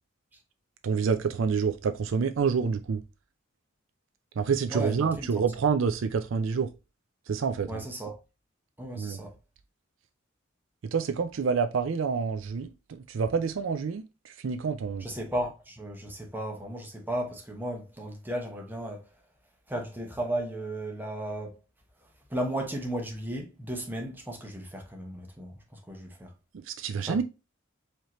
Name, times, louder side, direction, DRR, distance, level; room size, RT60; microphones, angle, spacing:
voice 1, 0.8-3.0 4.4-6.7 7.3-7.8 9.0-9.2 10.9-12.7 13.1-15.1 26.5-27.2, right 5 dB, 65° right, 0.4 m, -27 dB
voice 2, 4.7-5.3 7.7-8.2 8.8-9.3 15.0-19.1 19.7-21.6 22.3-26.3 27.0-27.2, right 1 dB, 10° right, 0.9 m, -35 dB
4.8 x 2.9 x 2.9 m
head